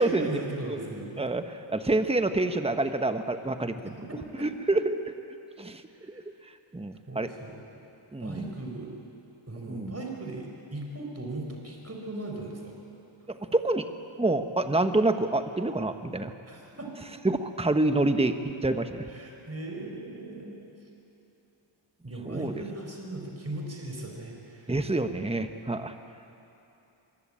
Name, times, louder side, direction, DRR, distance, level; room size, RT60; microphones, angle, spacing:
voice 1, 0.0-1.3 3.8-4.5 5.9-6.1 7.1-7.6 8.2-8.9 9.5-12.8 16.5-16.9 19.1-20.6 22.0-24.7, right 2 dB, 30° right, 1 dB, 4.7 m, -38 dB
voice 2, 1.2-4.0 4.4-5.0 5.6-5.8 6.1-6.2 6.7-7.3 8.1-8.5 9.7-9.9 13.3-13.9 14.2-16.3 17.2-19.1 22.3-22.5 24.7-25.9, right 2 dB, 10° right, 8 dB, 1.2 m, -27 dB
24.5 x 22.5 x 8.9 m, 2.9 s
wide cardioid pair, 80°, 47 cm